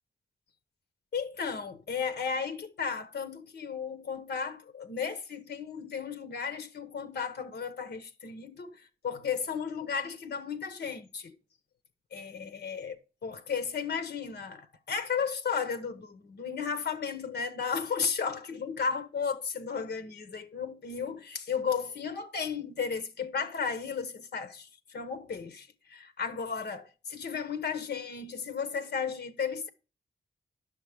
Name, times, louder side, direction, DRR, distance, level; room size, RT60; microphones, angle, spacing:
voice 1, 1.1-11.4 12.1-12.9 13.2-29.7, left 6 dB, 90° left, 1.1 m, -34 dB
10.0 x 6.6 x 3.5 m
wide cardioid pair, 90°, 17 cm